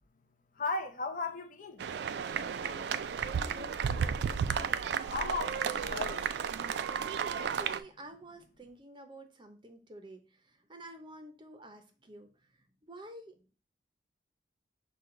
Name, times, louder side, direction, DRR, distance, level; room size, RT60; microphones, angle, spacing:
voice 1, 0.5-1.9 5.1-6.3, left 3 dB, 45° left, 0.6 m, -36 dB
sound 1, 1.8-7.8, right 7 dB, 65° right, 0.3 m, -33 dB
voice 2, 2.3-4.9 6.6-13.5, right 1 dB, 25° right, 0.6 m, -51 dB
6.0 x 2.3 x 3.7 m
head